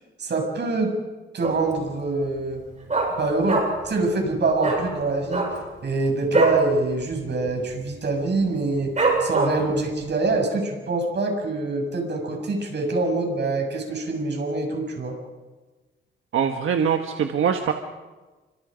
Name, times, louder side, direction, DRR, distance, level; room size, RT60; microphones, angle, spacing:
voice 1, 0.2-1.0 1.3-2.6 3.2-5.5 5.8-15.2, right 3 dB, 60° right, 2 dB, 7.2 m, -25 dB
Dog, 1.4-1.8 2.1-2.2 2.5-3.9 4.2-4.3 4.6-4.8 5.2-6.6 7.0-7.2 7.4-7.8 8.3-8.4 9.0-9.8 10.2-10.3, right 3 dB, 35° right, 7.7 m, -23 dB
voice 2, 16.3-17.7, right 7 dB, 90° right, 5 dB, 1.5 m, -23 dB
29.5 x 25.5 x 5.2 m, 1.2 s
cardioid pair, 100°, 20 cm